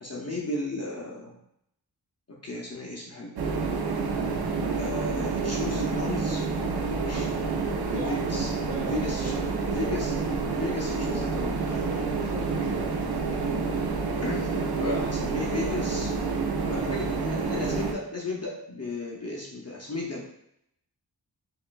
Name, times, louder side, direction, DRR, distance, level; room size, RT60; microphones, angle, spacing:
voice 1, 0.0-1.3 2.3-3.4 4.8-6.4 7.0-8.5 8.8-9.3 9.7-10.2 10.6-12.0 14.2-16.1 16.7-20.2, left 2 dB, 40° left, -2 dB, 0.6 m, -34 dB
sound 1, 3.4-17.9, right 4 dB, 70° right, 0.6 m, -28 dB
voice 2, 7.9-8.4 8.6-9.4 12.1-13.2 16.7-17.0, equal, 20° right, -4 dB, 1.2 m, -41 dB
5.2 x 2.4 x 2.3 m, 0.76 s
wide cardioid pair, 100°, 39 cm